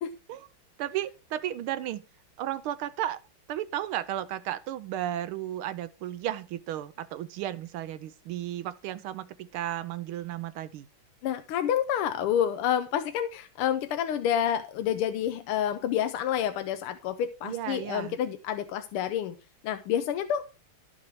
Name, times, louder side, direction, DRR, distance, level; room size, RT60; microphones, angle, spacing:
voice 1, 0.8-2.0 2.4-3.2 3.5-10.9 17.4-18.2, right 12 dB, 80° right, 1.5 m, -34 dB
voice 2, 11.2-19.3 19.6-20.4, left 9 dB, 85° left, 1.6 m, -28 dB
12.0 x 6.4 x 4.6 m
omnidirectional pair, 2.4 m